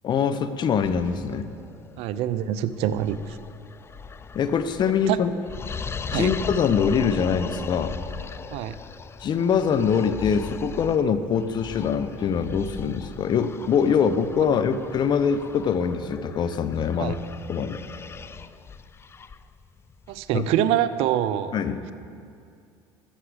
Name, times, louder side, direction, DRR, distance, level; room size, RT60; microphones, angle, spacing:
voice 1, 0.0-1.5 4.3-5.3 6.1-8.0 9.2-17.2 17.5-17.8 20.3-20.4 21.5-21.8, left 6 dB, 45° left, 11 dB, 0.8 m, -23 dB
sound 1, 0.8-20.5, left 5 dB, 25° left, 0.5 m, -39 dB
voice 2, 2.0-3.4 5.1-5.2 6.1-6.3 8.5-8.8 17.0-17.2 20.1-21.5, right 11 dB, 65° right, 14 dB, 0.6 m, -25 dB
13.5 x 6.6 x 8.0 m, 2.4 s
supercardioid pair, 85°, 11 cm